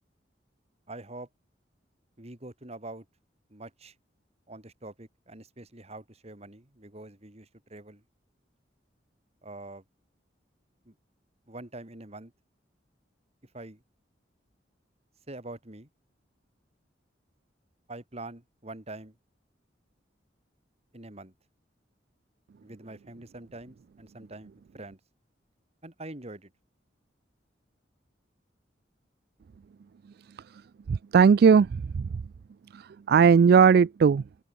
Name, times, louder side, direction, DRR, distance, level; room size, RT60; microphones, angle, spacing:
voice 1, 0.9-1.3 2.2-3.1 3.5-3.9 4.5-8.0 9.4-9.8 10.8-10.9 11.5-12.3 13.5-13.8 15.3-15.9 17.9-19.2 20.9-21.3 22.6-25.0 25.8-26.5, right 2 dB, 35° right, 2.7 m, -44 dB
voice 2, 30.9-32.1 32.7-34.2, right 6 dB, 55° right, 0.3 m, -19 dB
open air
head